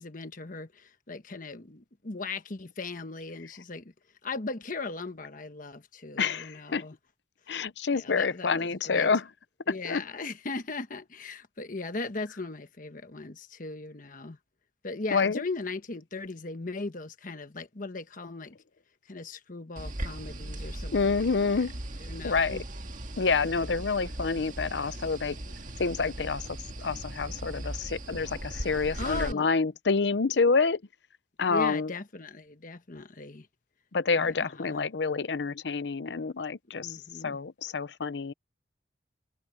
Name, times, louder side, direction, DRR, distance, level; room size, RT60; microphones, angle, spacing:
voice 1, 0.0-3.9 4.2-7.0 7.9-9.1 9.7-14.4 14.8-18.6 19.1-21.3 22.0-22.6 29.0-29.5 31.5-33.5 34.1-34.8 36.7-37.4, left 3 dB, 45° left, 1.2 m, -38 dB
voice 2, 6.2-6.9 7.5-9.2 9.7-10.0 15.1-15.4 20.9-21.7 22.2-22.6 23.2-25.4 25.8-30.8 31.4-31.9 33.9-37.0 37.2-38.3, left 4 dB, 70° left, 0.7 m, -28 dB
sound 1, 19.8-29.3, right 1 dB, 45° right, 1.9 m, -38 dB
head